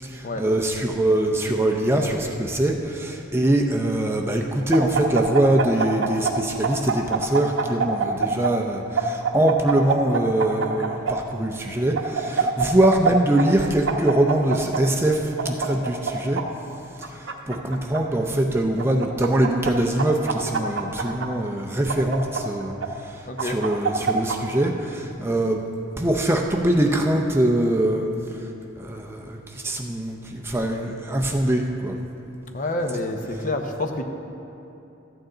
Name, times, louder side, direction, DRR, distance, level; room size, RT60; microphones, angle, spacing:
voice 1, 0.0-16.4 17.0-22.7 23.0-25.6 26.0-28.1 28.8-32.0, right 1 dB, 10° right, 1 dB, 0.5 m, -23 dB
sound 1, 4.7-6.3 6.6-8.5 9.0-11.1 11.9-13.1 13.4-13.5 13.9-14.8 15.4-16.4 17.0-18.0 18.8-19.7 20.0-21.3 21.9-22.9 23.4-24.4, right 6 dB, 70° right, 0.9 m, -24 dB
voice 2, 23.3-23.6 32.5-34.0, left 2 dB, 40° left, 4 dB, 0.7 m, -28 dB
14.0 x 9.0 x 3.9 m, 2.8 s
head